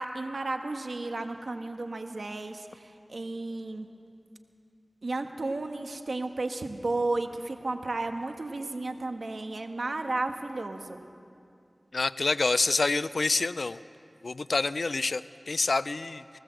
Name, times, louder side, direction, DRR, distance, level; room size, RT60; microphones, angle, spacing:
voice 1, 0.0-3.9 5.0-11.0, right 2 dB, 85° right, 5 dB, 1.4 m, -33 dB
voice 2, 11.9-13.8 14.2-16.4, left 3 dB, 90° left, 15 dB, 0.5 m, -27 dB
20.5 x 18.5 x 7.8 m, 2.5 s
wide cardioid pair, 60°, 0 cm